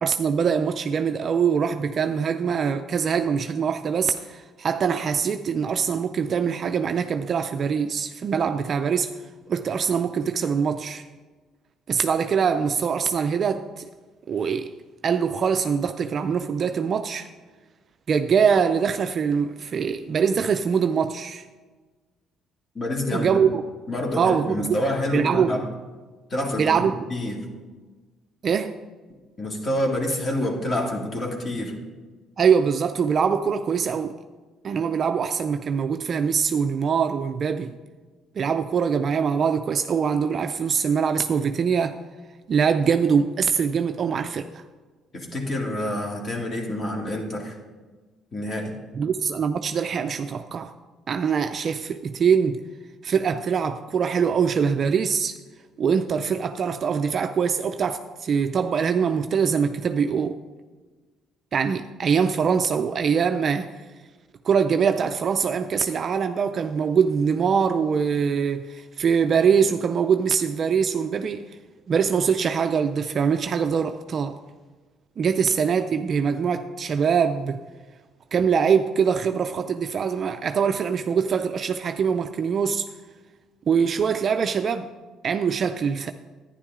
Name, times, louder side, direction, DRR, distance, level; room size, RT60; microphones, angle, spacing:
voice 1, 0.0-9.2 9.5-11.0 11.9-13.8 14.3-14.7 15.0-17.3 18.1-21.4 23.1-23.6 24.2-24.8 25.1-25.6 26.6-27.0 28.4-28.7 32.4-34.1 34.6-37.8 38.4-42.0 42.5-44.6 48.9-50.7 51.1-52.6 53.0-55.3 55.8-60.4 61.5-63.7 64.4-71.6 71.9-74.4 75.2-77.6 78.3-82.9 83.7-84.9 85.2-86.1, right 6 dB, 45° right, 8 dB, 0.4 m, -23 dB
voice 2, 22.7-23.4 23.9-25.7 26.3-27.5 29.4-31.7 45.1-47.6 48.3-48.8, left 1 dB, 35° left, 0 dB, 2.3 m, -27 dB
11.5 x 9.9 x 3.7 m, 1.3 s
cardioid pair, 105°, 0 cm